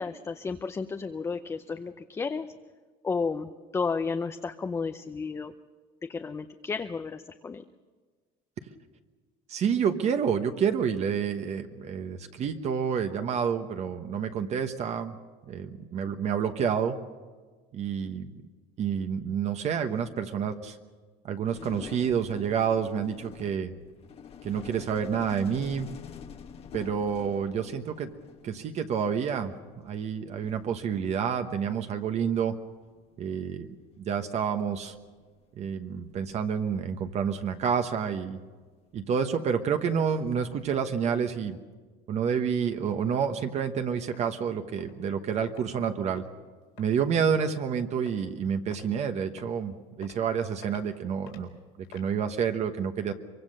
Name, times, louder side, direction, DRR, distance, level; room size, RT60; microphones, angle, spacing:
voice 1, 0.0-2.5 3.0-5.5 6.0-7.6, left 4 dB, 15° left, 7 dB, 0.6 m, -32 dB
voice 2, 9.5-15.2 15.5-17.0 17.7-18.3 18.8-20.8 21.2-23.7 24.4-25.9 26.7-28.1 28.4-29.5 29.8-32.5 33.2-33.7 34.0-34.9 35.6-38.4 38.9-41.6 42.1-46.2 46.8-53.1, right 7 dB, 40° right, 7 dB, 1.2 m, -29 dB
sound 1, 21.5-29.0 30.1-30.2 30.4-31.7 32.8-33.1 34.3-34.4 34.9-35.2 36.1-38.4 39.9-41.1, left 7 dB, 35° left, 1.3 m, -47 dB
sound 2, 43.7-43.8 44.1-44.3 44.8-44.9 45.5-45.6 46.2-46.3 46.8-46.9 47.4-47.6 48.1-48.4 48.7-48.9 49.4-49.6 50.0-50.2 50.6-50.9 51.3-51.4 51.8-52.1, left 10 dB, 85° left, 4.3 m, -50 dB
24.0 x 24.0 x 6.6 m, 1.4 s
cardioid pair, 160°, 17 cm